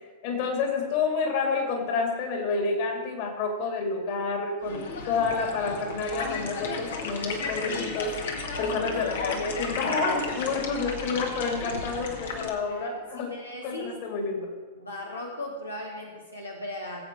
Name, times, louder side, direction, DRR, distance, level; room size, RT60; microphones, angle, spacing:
voice 1, 0.2-8.2 8.6-13.3 13.6-14.5, left 4 dB, 50° left, 2 dB, 3.2 m, -29 dB
sound 1, 4.6-12.5, left 4 dB, 65° left, 2.0 m, -34 dB
voice 2, 8.9-9.5 10.4-10.7 12.7-14.0 14.4-14.5 14.7-17.0, left 1 dB, 85° left, 0 dB, 1.7 m, -38 dB
19.5 x 8.2 x 4.8 m, 1.4 s
figure-of-eight pair, 100°, 0 cm